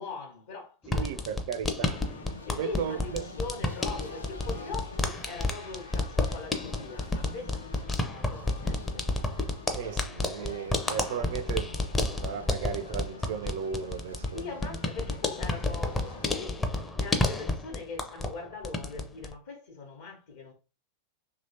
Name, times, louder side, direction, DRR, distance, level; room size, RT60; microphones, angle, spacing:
voice 1, 0.0-1.2 2.5-9.1 14.3-20.5, left 4 dB, 60° left, 0.8 m, -41 dB
sound 1, 0.8-18.4 18.6-19.3, left 2 dB, 15° left, 0.5 m, -31 dB
voice 2, 0.9-2.0 2.6-3.3 9.7-11.8 12.2-14.8, right 7 dB, 55° right, 0.4 m, -35 dB
sound 2, 1.9-16.4, left 3 dB, 75° left, 0.4 m, -47 dB
2.9 x 2.8 x 2.7 m
figure-of-eight pair, 90°, 0 cm